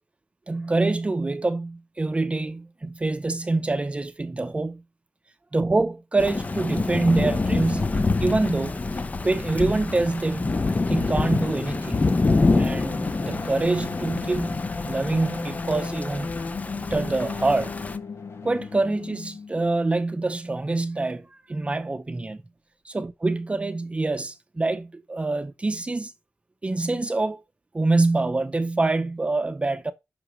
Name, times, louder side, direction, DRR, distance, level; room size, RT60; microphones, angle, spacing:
voice 1, 0.5-4.8 5.5-8.8 9.2-10.6 10.9-12.0 12.5-14.6 14.8-16.3 16.7-17.8 18.4-22.4 22.9-26.1 26.6-27.4 27.7-29.9, right 2 dB, 25° right, 0.7 m, -25 dB
Thunder / Rain, 6.2-18.0, left 3 dB, 35° left, 0.8 m, -26 dB
sound 1, 10.5-19.7, left 4 dB, 65° left, 1.6 m, -35 dB
11.0 x 5.9 x 3.2 m
wide cardioid pair, 125°, 5 cm